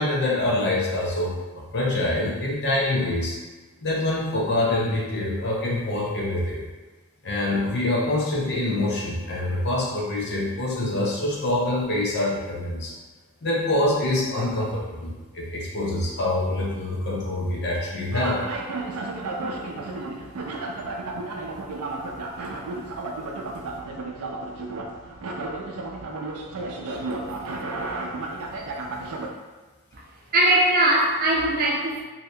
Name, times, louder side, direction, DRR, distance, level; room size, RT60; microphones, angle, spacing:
voice 1, 0.0-3.3 3.8-6.6 7.2-12.9 13.4-18.4 28.9-29.0, left 1 dB, 50° left, -4 dB, 0.6 m, -25 dB
sound 1, 18.1-29.3, right 2 dB, 85° right, 0.4 m, -33 dB
voice 2, 26.9-27.6 29.9-30.0 30.3-32.0, right 1 dB, 40° right, -2 dB, 0.6 m, -22 dB
2.7 x 2.7 x 3.2 m, 1.3 s
head